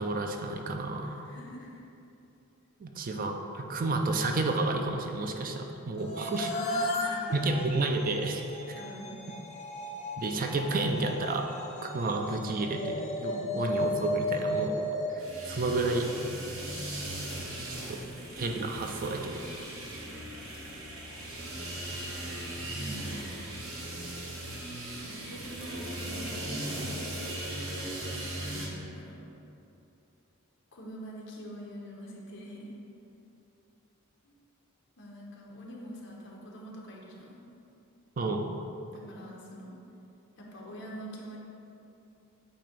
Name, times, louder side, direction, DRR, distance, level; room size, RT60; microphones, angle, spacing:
voice 1, 0.0-1.2 2.8-6.5 7.3-8.8 10.2-11.5 11.8-14.8 15.1-16.1 17.9-18.0 18.3-19.4 38.2-38.5, right 2 dB, 40° right, 3 dB, 0.4 m, -31 dB
voice 2, 1.0-1.8 6.5-7.6 8.7-9.2 13.3-13.7 22.7-23.3 25.0-27.0 28.3-29.3 30.7-32.7 34.2-34.3 35.0-37.4 38.9-39.8 40.4-41.4, equal, 55° left, -3 dB, 1.1 m, -44 dB
sound 1, 6.0-16.2, left 1 dB, 30° left, 0.6 m, -35 dB
sound 2, 15.2-28.7, right 1 dB, 70° right, 1.2 m, -38 dB
8.6 x 2.9 x 5.2 m, 2.7 s
head